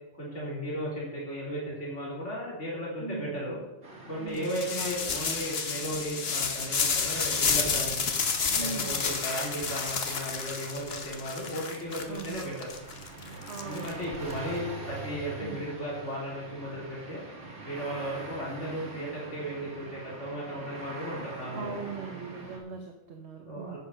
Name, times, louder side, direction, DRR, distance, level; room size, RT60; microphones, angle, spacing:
voice 1, 0.2-3.6 4.1-8.0 8.6-12.5 13.6-17.2 17.6-21.8 23.5-23.8, equal, 80° left, -5 dB, 3.8 m, -35 dB
voice 2, 3.0-3.4 4.2-5.0 5.3-5.5 8.6-9.0 12.1-12.5 13.5-14.5 15.4-15.6 21.5-23.8, right 5 dB, 65° right, 2 dB, 1.4 m, -40 dB
sound 1, 3.8-22.6, right 2 dB, 85° right, 2.5 m, -44 dB
sound 2, 4.4-14.3, left 5 dB, 60° left, 1.3 m, -30 dB
11.0 x 8.4 x 5.5 m, 1.0 s
omnidirectional pair, 1.2 m